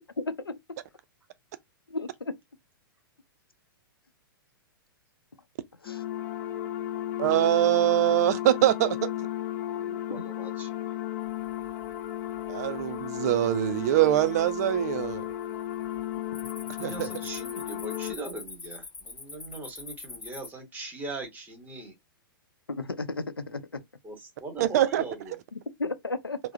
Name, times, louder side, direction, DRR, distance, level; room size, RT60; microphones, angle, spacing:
voice 1, 0.2-0.5 1.9-2.3 5.8-6.0 10.1-10.2 22.7-23.8 25.5-26.4, left 3 dB, 85° left, 0.5 m, -34 dB
sound 1, 5.9-18.2, left 12 dB, 35° left, 0.4 m, -34 dB
voice 2, 7.2-9.1 12.5-15.2 16.8-17.1 24.6-25.0, right 14 dB, 45° right, 0.5 m, -23 dB
voice 3, 9.7-10.7 16.7-21.9 24.0-25.3, right 2 dB, 15° right, 1.2 m, -40 dB
Cricket, 11.5-12.0 12.4-12.8 13.4-13.5 14.2-14.8 15.0-15.3 15.6-20.5, left 4 dB, 10° left, 0.9 m, -44 dB
3.4 x 2.1 x 2.6 m
figure-of-eight pair, 105°, 12 cm